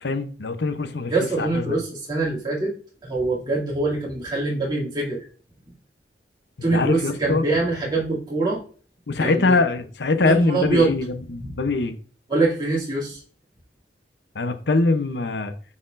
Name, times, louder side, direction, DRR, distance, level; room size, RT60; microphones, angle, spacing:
voice 1, 0.0-1.1 1.4-1.8 6.7-7.4 9.1-12.0 14.4-15.5, left 3 dB, 75° left, 0.7 m, -23 dB
voice 2, 1.1-2.7 3.1-5.2 6.6-8.6 9.2-9.6 10.2-10.9 11.4-11.5 12.3-13.2, right 3 dB, 25° right, 2.5 m, -24 dB
9.5 x 4.2 x 2.5 m
head